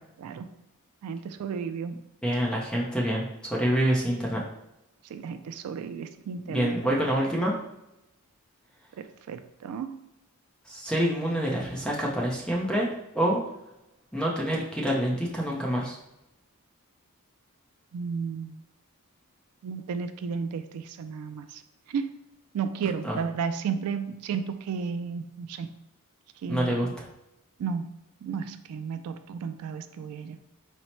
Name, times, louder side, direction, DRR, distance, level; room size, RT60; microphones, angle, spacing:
voice 1, 1.0-1.9 5.0-7.1 9.0-9.9 17.9-18.6 19.6-21.6 21.9-22.1 22.5-25.7 26.4-26.9 27.6-27.9 28.2-30.4, right 6 dB, 75° right, 11 dB, 0.3 m, -33 dB
voice 2, 2.2-4.4 6.5-7.5 10.7-12.9 13.1-13.4 14.1-16.0 23.0-23.2 26.5-26.9, equal, 5° left, -3 dB, 0.5 m, -26 dB
4.2 x 2.0 x 4.3 m, 0.88 s
head